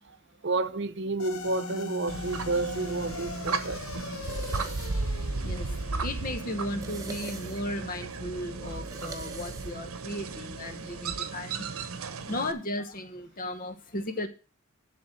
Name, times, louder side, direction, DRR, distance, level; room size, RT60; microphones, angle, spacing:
voice 1, 0.4-3.8 12.0-12.1, right 3 dB, 50° right, 0.6 m, -30 dB
sound 1, 1.2-9.7, left 3 dB, 75° left, 1.0 m, -41 dB
sound 2, 2.1-12.5, right 3 dB, 75° right, 0.9 m, -35 dB
sound 3, 4.2-10.0, right 3 dB, 15° right, 0.9 m, -46 dB
voice 2, 4.4-4.8 5.4-11.7 12.3-14.3, left 1 dB, 40° left, 0.9 m, -36 dB
11.5 x 3.8 x 7.6 m
head